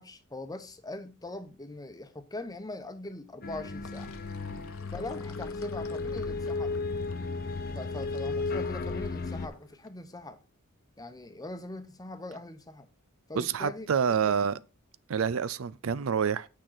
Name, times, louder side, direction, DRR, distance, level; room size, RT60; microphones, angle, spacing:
voice 1, 0.0-4.4 4.9-6.8 7.7-10.4 11.0-12.9 13.3-14.4, left 2 dB, 20° left, 0.9 m, -42 dB
sound 1, 3.4-9.5, left 3 dB, 50° left, 0.9 m, -34 dB
Sink (filling or washing), 3.6-9.9, left 4 dB, 70° left, 1.0 m, -53 dB
voice 2, 13.4-14.5 15.1-16.5, right 7 dB, 70° right, 0.5 m, -27 dB
8.9 x 6.1 x 3.9 m
head